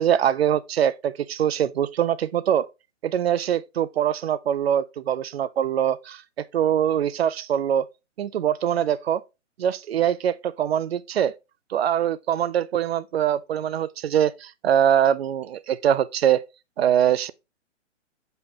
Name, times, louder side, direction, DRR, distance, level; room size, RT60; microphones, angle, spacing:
voice 1, 0.0-2.7 3.0-6.2 6.5-7.9 8.2-9.2 9.6-11.3 11.7-16.4 16.8-17.3, right 9 dB, 55° right, 0.5 m, -23 dB
6.1 x 5.5 x 2.8 m
figure-of-eight pair, 135°, 37 cm